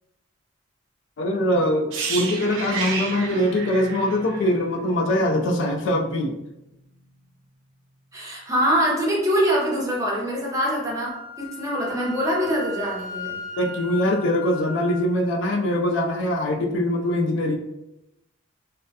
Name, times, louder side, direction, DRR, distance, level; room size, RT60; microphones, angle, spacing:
voice 1, 1.2-6.4 13.6-17.6, left 1 dB, 70° left, 3 dB, 0.3 m, -23 dB
sound 1, 1.9-5.8 6.0-6.2, right 4 dB, 75° right, 0.4 m, -32 dB
voice 2, 8.1-13.3, equal, 15° right, -3 dB, 0.5 m, -24 dB
Wind instrument woodwind instrument, 10.9-15.0, left 1 dB, 15° left, 0.8 m, -37 dB
2.2 x 2.1 x 2.6 m, 0.90 s
head